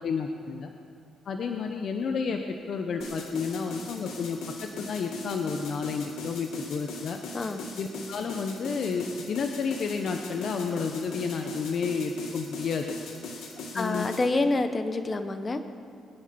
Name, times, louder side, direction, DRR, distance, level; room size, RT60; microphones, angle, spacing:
voice 1, 0.0-0.7 1.3-4.4 4.8-7.2 7.8-12.8 13.7-14.1, left 5 dB, 60° left, 4 dB, 1.0 m, -31 dB
sound 1, 3.0-14.3, left 3 dB, 80° left, 2.3 m, -40 dB
voice 2, 7.3-7.6 13.7-15.6, left 2 dB, 30° left, 8 dB, 1.2 m, -27 dB
22.0 x 10.0 x 5.3 m, 2.5 s
cardioid pair, 90°, 0 cm